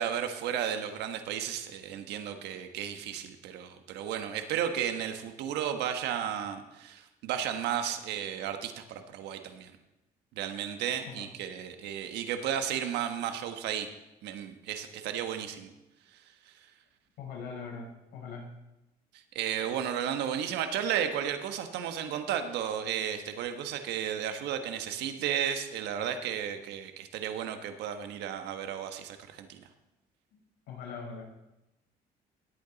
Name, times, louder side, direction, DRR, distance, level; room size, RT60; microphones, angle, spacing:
voice 1, 0.0-9.7 10.4-13.9 14.2-15.7 19.3-29.6, right 9 dB, 85° right, 7 dB, 1.3 m, -33 dB
voice 2, 17.2-18.5 30.7-31.2, left 5 dB, 80° left, -1 dB, 4.4 m, -41 dB
19.5 x 8.7 x 4.0 m, 0.95 s
cardioid pair, 110°, 17 cm